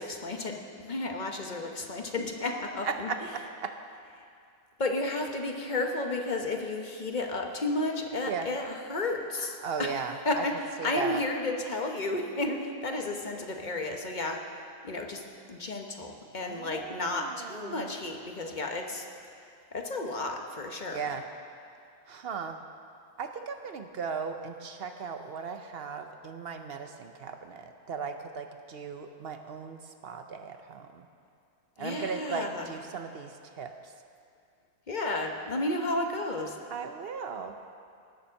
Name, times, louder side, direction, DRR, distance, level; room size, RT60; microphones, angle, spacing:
voice 1, 0.0-3.1 4.2-4.3 4.8-10.0 10.2-19.1 19.7-21.1 31.8-32.7 34.9-36.6, left 2 dB, 35° left, 3 dB, 0.9 m, -32 dB
voice 2, 2.8-3.8 8.3-8.5 9.6-10.5 10.8-11.2 16.5-17.9 20.9-21.2 22.1-22.6 23.2-31.0 31.8-33.9 36.7-37.5, right 5 dB, 65° right, 7 dB, 0.6 m, -37 dB
19.0 x 7.1 x 6.3 m, 2.4 s
omnidirectional pair, 1.7 m